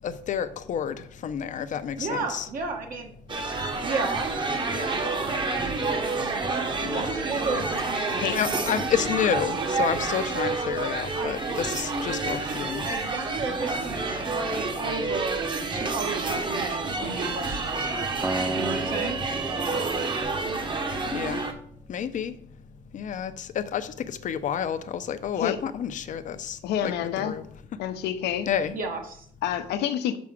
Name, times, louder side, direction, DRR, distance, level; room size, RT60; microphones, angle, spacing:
voice 1, 0.0-2.5 6.8-7.0 8.3-12.9 21.1-21.5 21.9-22.4 22.9-27.4 28.5-28.8, left 8 dB, 50° left, 0.7 m, -30 dB
voice 2, 2.0-3.1 3.8-4.3 4.6-5.1 5.4-5.5 5.9-6.4 6.9-8.1 11.2-11.3 12.8-15.4 15.7-18.1 18.5-19.2 28.7-29.2, right 3 dB, 55° right, 1.4 m, -33 dB
sound 1, 3.3-21.5, right 3 dB, 30° right, 1.1 m, -29 dB
sound 2, 11.1-13.1 14.1-15.6 16.9-20.2, right 7 dB, 80° right, 2.7 m, -39 dB
Acoustic guitar, 18.2-21.4, right 2 dB, 10° right, 0.4 m, -34 dB
voice 3, 26.6-27.4 27.8-28.5 29.4-30.2, left 10 dB, 80° left, 0.8 m, -28 dB
6.1 x 4.8 x 6.0 m
cardioid pair, 110°, 17 cm